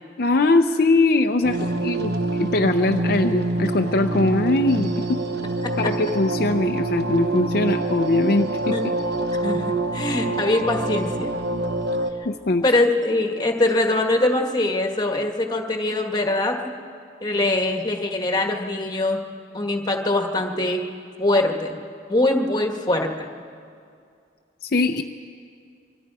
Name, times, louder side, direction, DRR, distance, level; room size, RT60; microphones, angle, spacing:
voice 1, 0.2-5.2 5.8-8.8 12.2-12.6 24.6-25.0, left 2 dB, 55° left, 4 dB, 0.6 m, -21 dB
sound 1, 1.4-12.1, right 2 dB, 60° right, 1.2 m, -26 dB
voice 2, 9.4-11.3 12.6-16.7 17.2-19.2 19.5-20.8 21.2-21.8 22.1-23.3, left 2 dB, 25° left, 3 dB, 1.5 m, -22 dB
25.0 x 23.5 x 4.8 m, 2.3 s
head